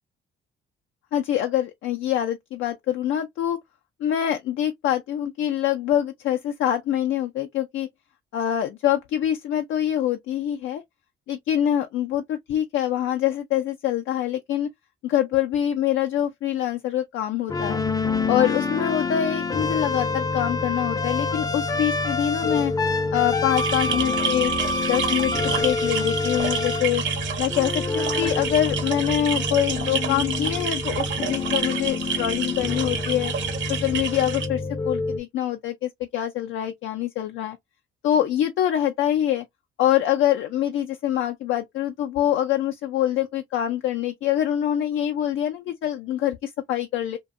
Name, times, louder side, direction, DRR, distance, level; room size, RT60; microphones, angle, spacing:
voice 1, 1.1-3.6 4.0-7.9 8.3-10.8 11.3-14.7 15.0-17.8 18.3-22.7 23.1-24.5 24.8-27.0 27.4-33.3 33.7-37.6 38.0-39.4 39.8-47.2, left 11 dB, 80° left, 0.4 m, -25 dB
sound 1, 17.5-35.2, left 3 dB, 20° left, 0.4 m, -27 dB
sound 2, 23.6-34.5, right 7 dB, 70° right, 0.6 m, -29 dB
2.6 x 2.2 x 2.4 m
cardioid pair, 90°, 20 cm